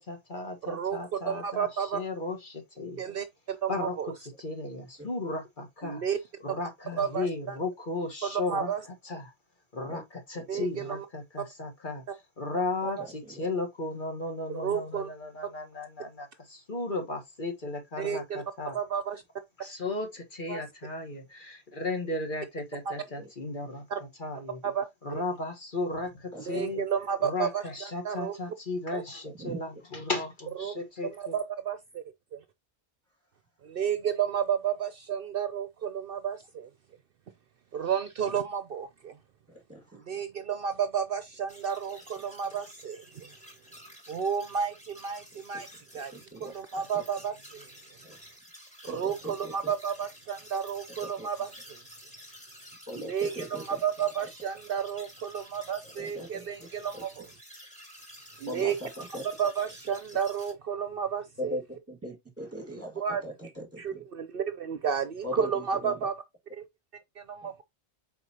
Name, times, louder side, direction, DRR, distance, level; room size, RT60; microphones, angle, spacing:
voice 1, 0.1-3.0 3.7-6.0 6.4-8.7 9.0-9.3 9.7-12.0 12.4-18.8 19.6-23.8 24.2-24.6 25.0-26.8 27.2-31.3, left 2 dB, 45° left, 1.5 m, -35 dB
voice 2, 0.6-1.0 1.3-2.0 3.0-4.1 5.8-6.2 7.0-7.6 8.2-8.8 10.5-11.1 13.0-13.1 14.5-15.1 18.0-18.4 18.7-19.2 20.5-20.6 23.9-24.0 24.6-24.9 25.1-25.2 26.5-27.6 28.0-28.3 28.9-29.0 30.6-30.7 31.0-32.0 32.3-32.4 33.6-36.7 37.7-39.1 40.1-43.3 44.1-45.7 45.9-46.1 46.4-47.6 48.8-51.8 52.9-57.3 58.4-59.1 59.4-61.6 63.0-63.2 63.8-66.1 66.5-66.6 67.2-67.6, right 7 dB, 60° right, 0.7 m, -32 dB
voice 3, 39.7-40.0 46.1-46.5 48.0-48.2 48.9-49.5 51.2-51.3 52.9-53.6 56.0-56.7 56.9-57.0 58.5-59.2 61.4-62.9 63.2-64.0 65.2-65.9, equal, 10° right, 1.9 m, -39 dB
sound 1, 41.5-60.5, equal, 5° left, 2.1 m, -51 dB
7.6 x 4.4 x 2.8 m
omnidirectional pair, 1.2 m